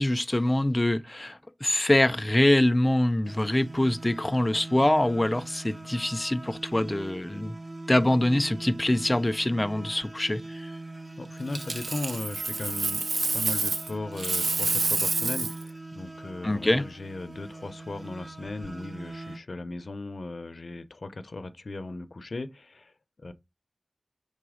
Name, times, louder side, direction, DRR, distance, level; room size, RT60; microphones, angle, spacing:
voice 1, 0.0-7.6 7.9-10.7 16.4-16.9, left 1 dB, 25° left, 0.5 m, -24 dB
sound 1, 3.2-19.4, right 2 dB, 40° right, 1.0 m, -42 dB
voice 2, 11.2-22.9 23.2-23.3, left 2 dB, 70° left, 0.5 m, -37 dB
Coin (dropping), 11.5-13.9 14.2-15.6 18.5-18.7, right 3 dB, 80° right, 0.5 m, -28 dB
5.4 x 4.0 x 4.9 m
wide cardioid pair, 70°, 0 cm